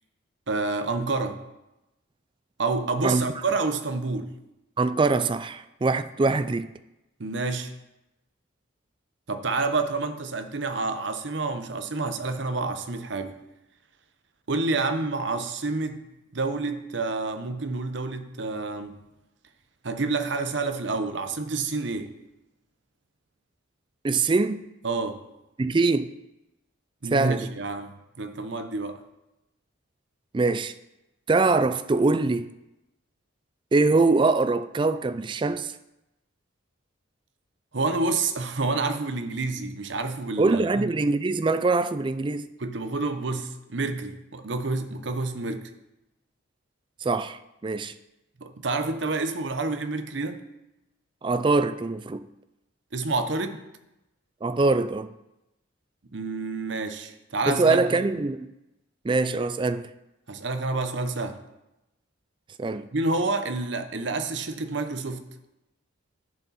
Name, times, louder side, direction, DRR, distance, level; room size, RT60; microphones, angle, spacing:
voice 1, 0.5-1.4 2.6-4.3 7.2-7.7 9.3-13.3 14.5-16.0 16.3-19.0 19.8-22.1 24.8-25.2 27.0-29.0 37.7-40.9 42.6-45.7 48.4-50.4 52.9-53.6 56.1-58.0 60.3-61.4 62.9-65.2, right 3 dB, 60° right, 0.8 m, -28 dB
voice 2, 4.8-6.7 24.0-24.7 25.6-26.1 27.1-27.5 30.3-30.7 31.3-32.5 33.7-35.8 40.4-42.5 47.0-47.4 47.6-47.9 51.2-52.2 54.4-55.1 57.5-58.5 59.0-59.8 62.6-62.9, right 3 dB, 25° right, 0.3 m, -23 dB
10.5 x 8.4 x 4.2 m
head